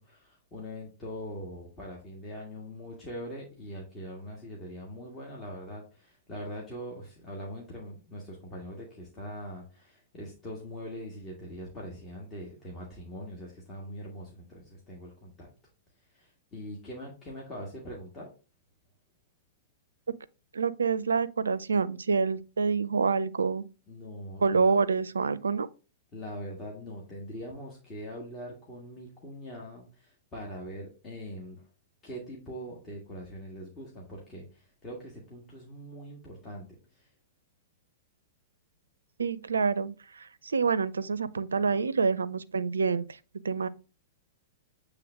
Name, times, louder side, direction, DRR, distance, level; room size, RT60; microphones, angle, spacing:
voice 1, 0.0-15.5 16.1-18.3 23.9-24.7 26.1-31.6 32.0-37.1, equal, 25° left, 1.7 m, -42 dB
voice 2, 20.5-23.6 24.4-25.7 39.2-43.0 43.4-43.7, right 5 dB, 75° right, 0.4 m, -27 dB
8.4 x 3.4 x 3.5 m
figure-of-eight pair, 105°, 0 cm